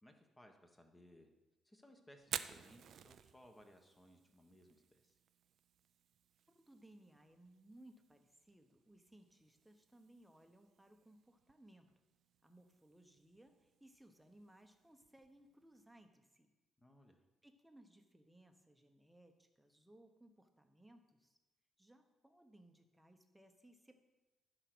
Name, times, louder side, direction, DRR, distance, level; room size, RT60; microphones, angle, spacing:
voice 1, 0.0-1.3 1.6-5.2 16.8-17.2, left 1 dB, 15° left, 4 dB, 1.4 m, -63 dB
Fire, 2.2-16.1, right 9 dB, 65° right, 0.4 m, -54 dB
voice 2, 6.5-11.9 12.4-16.5 17.4-21.4 21.8-24.0, right 1 dB, 5° right, 5 dB, 1.1 m, -64 dB
11.0 x 4.9 x 6.2 m, 1.1 s
cardioid pair, 90°, 0 cm